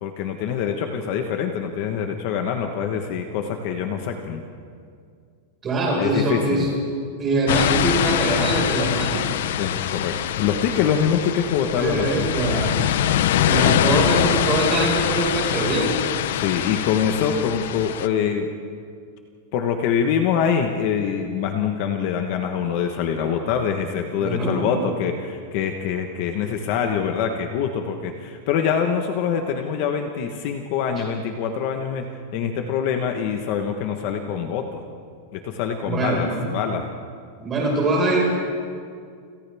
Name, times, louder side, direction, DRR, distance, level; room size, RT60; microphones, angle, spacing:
voice 1, 0.0-4.4 6.0-6.7 9.6-12.3 13.9-14.3 16.3-18.5 19.5-34.8 35.3-36.9, left 7 dB, 40° left, 5 dB, 1.2 m, -24 dB
voice 2, 5.6-6.7 7.2-9.4 11.8-12.8 13.5-16.0 24.2-24.8 35.9-36.4 37.4-38.2, right 2 dB, 15° right, -2 dB, 5.2 m, -23 dB
sound 1, 7.5-18.1, left 11 dB, 60° left, 0.7 m, -23 dB
29.5 x 27.0 x 3.6 m, 2.2 s
supercardioid pair, 180°, 0 cm